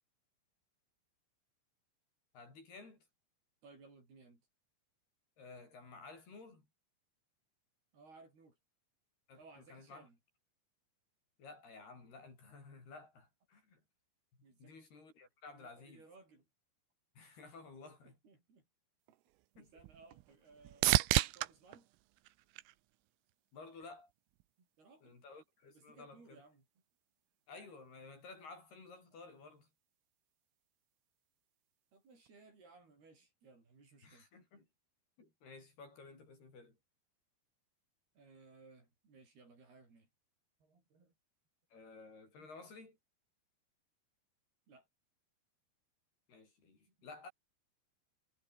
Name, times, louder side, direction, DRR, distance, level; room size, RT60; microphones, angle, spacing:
voice 1, 2.3-3.1 5.4-6.7 9.3-10.1 11.4-13.8 14.6-16.0 17.2-18.1 19.6-19.7 23.5-24.1 25.0-26.4 27.5-29.7 34.0-34.7 35.2-36.8 41.7-43.0 46.3-47.3, left 3 dB, 50° left, 9.5 m, -54 dB
voice 2, 3.6-4.4 7.9-8.6 9.4-10.2 14.4-14.8 15.5-16.5 17.9-18.7 19.1-19.2 19.6-20.9 21.3-21.9 24.6-25.2 25.7-26.7 31.9-34.3 38.1-40.1 40.6-41.1 42.4-42.5 44.7-44.9, right 3 dB, 50° right, 9.6 m, -61 dB
sound 1, 19.1-23.3 23.8-24.4 32.3-32.4, right 18 dB, 85° right, 3.6 m, -35 dB
omnidirectional pair, 5.8 m